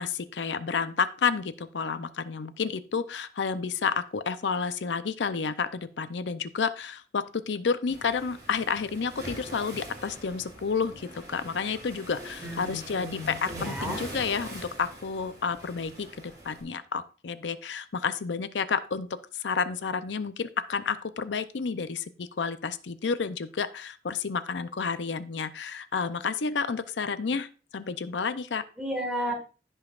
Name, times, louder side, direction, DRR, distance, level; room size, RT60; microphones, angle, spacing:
voice 1, 0.0-28.6, left 5 dB, 85° left, 12 dB, 0.6 m, -30 dB
Waves surf, 7.9-16.6, right 1 dB, 20° right, 4.2 m, -43 dB
voice 2, 12.4-14.0 28.8-29.3, equal, 5° right, 0 dB, 1.8 m, -33 dB
16.5 x 5.5 x 2.4 m, 0.35 s
head